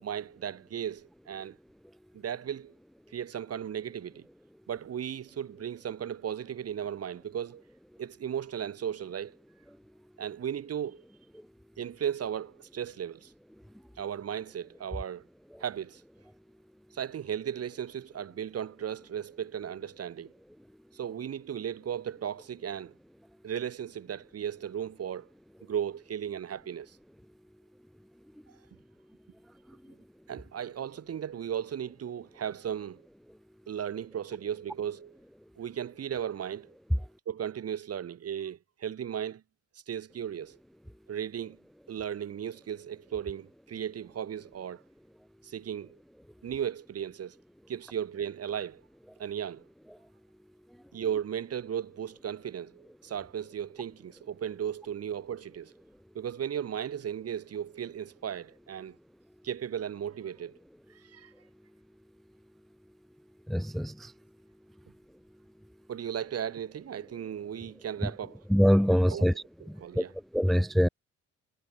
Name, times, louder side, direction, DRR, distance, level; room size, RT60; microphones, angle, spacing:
voice 1, 0.0-1.6 2.1-2.7 3.1-4.3 4.7-7.6 8.0-9.4 10.2-11.0 11.8-13.3 14.0-15.2 15.6-16.0 16.9-20.3 20.9-22.9 23.4-25.3 25.6-27.0 28.5-28.6 30.3-33.0 33.7-35.2 35.6-36.7 37.3-39.4 39.9-40.6 41.1-41.6 41.9-44.8 45.4-46.0 46.4-47.4 47.7-48.8 49.2-49.6 50.9-55.7 56.2-59.0 59.4-60.6 60.9-61.3 65.9-68.4 69.1-70.1, right 9 dB, 55° right, 1.8 m, -36 dB
voice 2, 63.5-64.1 68.5-69.3 70.0-70.1 70.3-70.9, equal, ahead, 0.6 m, -23 dB
cardioid pair, 90°, 30 cm